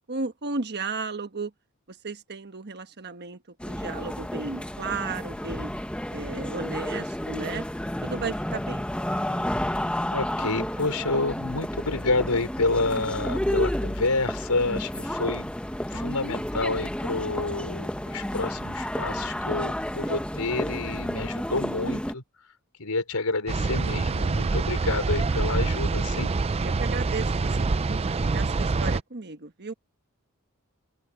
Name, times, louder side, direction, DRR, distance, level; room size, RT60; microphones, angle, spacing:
voice 1, 0.1-1.5 1.9-3.4 3.6-5.7 6.1-7.6 8.0-8.8 26.6-29.7, right 4 dB, 50° right, 1.3 m, -34 dB
sound 1, 3.6-22.1, left 1 dB, 5° left, 1.0 m, -31 dB
voice 2, 10.1-15.5 15.9-22.2 22.8-26.3, left 3 dB, 85° left, 4.3 m, -29 dB
sound 2, 23.5-29.0, right 3 dB, 25° right, 0.4 m, -25 dB
open air
head